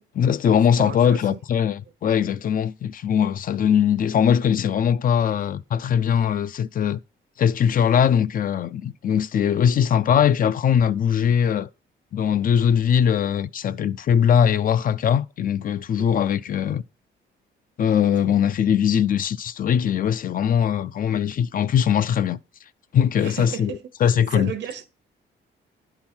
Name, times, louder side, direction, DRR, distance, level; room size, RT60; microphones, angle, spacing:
voice 1, 0.2-7.0 7.4-11.7 12.1-16.8 17.8-22.4 22.9-23.7 24.0-24.5, left 8 dB, 45° left, 0.4 m, -21 dB
voice 2, 0.8-1.4 16.0-16.1 23.2-24.9, right 8 dB, 60° right, 0.9 m, -35 dB
10.5 x 3.9 x 4.4 m
cardioid pair, 90°, 20 cm